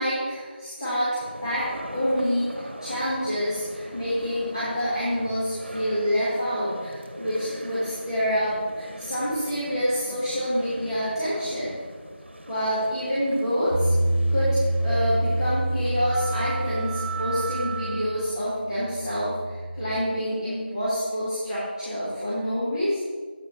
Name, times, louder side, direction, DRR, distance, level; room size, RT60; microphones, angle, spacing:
voice 1, 0.0-11.7 12.5-13.9 14.3-23.0, equal, 25° left, -12 dB, 1.7 m, -27 dB
sound 1, 1.2-18.4, right 3 dB, 75° right, 1.1 m, -40 dB
Bass guitar, 13.7-20.0, right 1 dB, 30° right, 1.9 m, -27 dB
8.4 x 7.0 x 3.2 m, 1.5 s
figure-of-eight pair, 170°, 6 cm